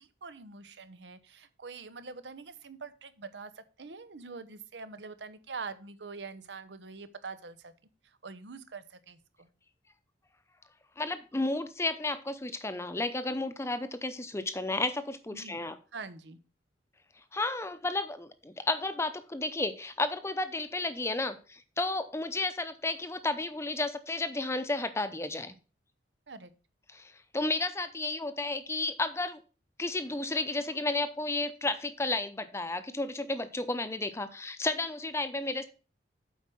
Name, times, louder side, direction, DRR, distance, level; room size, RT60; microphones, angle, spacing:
voice 1, 0.0-7.7 8.0-9.5 15.3-16.4 26.3-26.5, right 4 dB, 85° right, 13 dB, 0.9 m, -44 dB
voice 2, 11.0-15.8 17.3-25.6 26.9-29.4 29.8-35.7, left 2 dB, 15° left, 11 dB, 0.7 m, -32 dB
8.2 x 4.7 x 6.1 m, 0.35 s
head